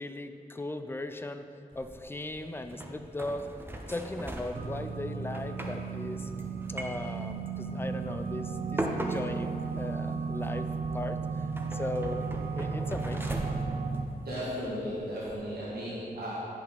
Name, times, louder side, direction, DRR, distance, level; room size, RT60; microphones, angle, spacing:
voice 1, 0.0-1.4 1.8-3.5 3.9-6.3 6.7-10.7 10.9-12.3 12.5-13.5, left 1 dB, 15° left, 8 dB, 0.4 m, -38 dB
sound 1, 1.7-15.3, right 1 dB, 15° right, 0.7 m, -41 dB
sound 2, 4.5-14.0, right 4 dB, 50° right, 0.5 m, -34 dB
voice 2, 14.2-16.4, equal, 80° right, -8 dB, 1.7 m, -35 dB
10.0 x 5.5 x 4.1 m, 2.6 s
wide cardioid pair, 100°, 16 cm